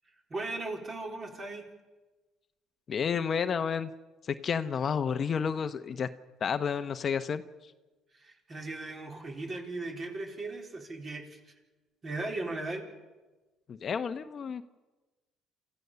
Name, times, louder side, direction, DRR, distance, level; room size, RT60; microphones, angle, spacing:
voice 1, 0.3-1.6 8.1-11.4 12.0-12.9, right 2 dB, 35° right, 2 dB, 4.2 m, -37 dB
voice 2, 2.9-3.9 4.4-6.1 6.4-7.4 13.7-14.6, left 6 dB, 45° left, 10 dB, 0.9 m, -30 dB
28.5 x 15.0 x 6.9 m, 1.2 s
cardioid pair, 105°, 0 cm